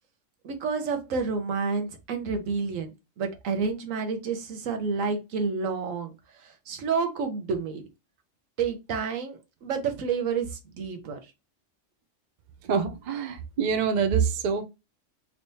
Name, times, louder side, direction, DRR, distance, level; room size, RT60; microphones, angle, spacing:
voice 1, 0.4-6.1 6.4-7.8 8.6-11.2, right 5 dB, 90° right, 1.2 m, -29 dB
voice 2, 12.7-14.6, right 6 dB, 60° right, 0.4 m, -25 dB
3.3 x 3.1 x 2.6 m
omnidirectional pair, 1.3 m